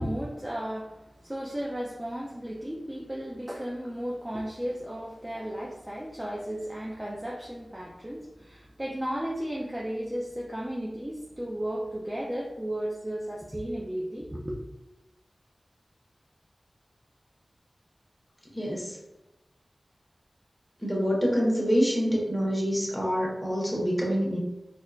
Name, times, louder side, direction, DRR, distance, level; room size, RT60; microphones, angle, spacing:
voice 1, 0.0-14.6, equal, 15° right, -4 dB, 0.6 m, -34 dB
voice 2, 18.5-19.0 20.8-24.4, equal, 5° left, -4 dB, 1.3 m, -26 dB
4.1 x 2.5 x 2.4 m, 0.97 s
cardioid pair, 45°, 0 cm